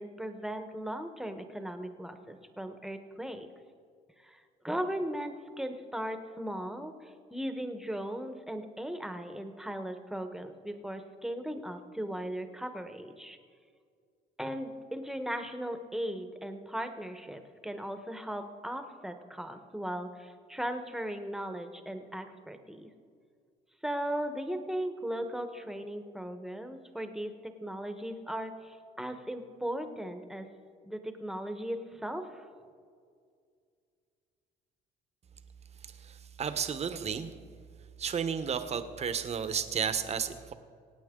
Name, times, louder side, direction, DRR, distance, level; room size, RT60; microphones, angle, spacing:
voice 1, 0.0-3.5 4.2-13.4 14.4-22.9 23.8-30.5 30.8-32.5, equal, ahead, 7 dB, 1.1 m, -37 dB
voice 2, 36.0-37.3 38.0-40.5, right 7 dB, 40° right, 10 dB, 1.0 m, -32 dB
24.5 x 8.9 x 3.8 m, 2.2 s
cardioid pair, 110°, 17 cm